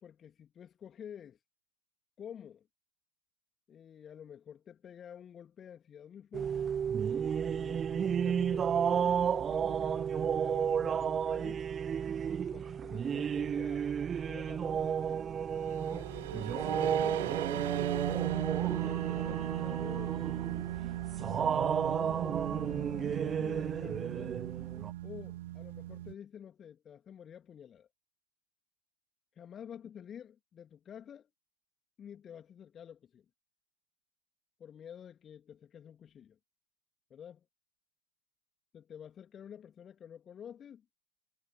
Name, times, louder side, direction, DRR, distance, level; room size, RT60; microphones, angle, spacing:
voice 1, 0.0-1.4 2.2-2.7 3.7-6.7 7.1-11.7 12.5-15.4 15.9-20.2 21.0-24.4 25.0-27.9 29.3-31.3 32.0-33.3 34.6-36.4 37.1-37.4 38.7-40.8, left 8 dB, 25° left, 2.5 m, -50 dB
sound 1, 6.3-24.9, right 7 dB, 20° right, 0.8 m, -32 dB
sound 2, 15.4-26.1, right 15 dB, 55° right, 0.6 m, -37 dB
figure-of-eight pair, 90°, 0 cm